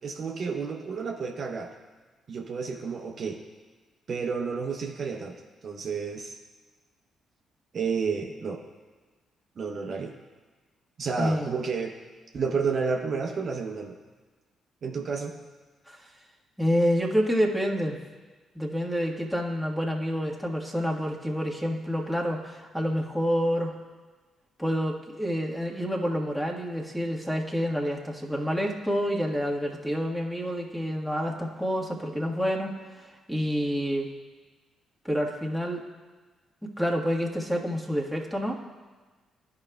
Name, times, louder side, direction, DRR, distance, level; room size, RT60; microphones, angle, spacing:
voice 1, 0.0-1.7 2.3-3.4 4.1-5.4 5.6-6.4 7.7-8.6 9.6-10.1 11.0-11.9 12.3-13.9 14.8-15.4, right 5 dB, 50° right, 1 dB, 0.8 m, -30 dB
voice 2, 11.2-11.5 15.9-16.0 16.6-18.0 18.5-23.7 24.6-32.7 33.3-34.1 35.0-35.8 36.6-38.6, equal, ahead, 0 dB, 1.5 m, -28 dB
13.0 x 4.8 x 2.3 m, 1.3 s
figure-of-eight pair, 40°, 0 cm